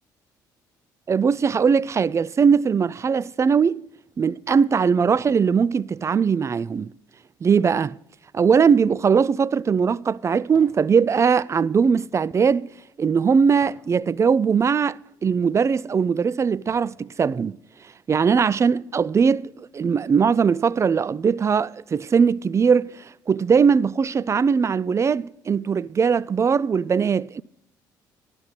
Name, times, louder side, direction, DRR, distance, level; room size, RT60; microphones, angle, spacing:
voice 1, 1.1-3.8 4.2-6.9 7.4-8.0 8.3-12.7 13.0-17.6 18.1-27.4, right 6 dB, 30° right, 0.3 m, -20 dB
sound 1, 10.4-10.9 11.3-13.9 14.5-14.8 15.5-15.6 16.1-17.0 17.5-17.6, right 4 dB, 60° right, 5.8 m, -53 dB
12.5 x 11.5 x 4.0 m
hypercardioid pair, 50°, 10 cm